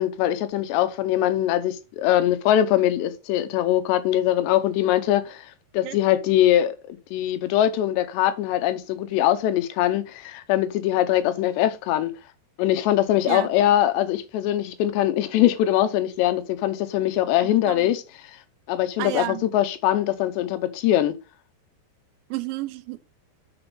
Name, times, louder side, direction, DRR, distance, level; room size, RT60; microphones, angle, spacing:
voice 1, 0.0-5.5 5.7-12.1 12.6-18.0 18.7-21.1, left 12 dB, 75° left, 2.9 m, -22 dB
voice 2, 19.0-19.4 22.3-23.0, right 17 dB, 85° right, 2.8 m, -31 dB
6.9 x 5.7 x 5.3 m
omnidirectional pair, 5.3 m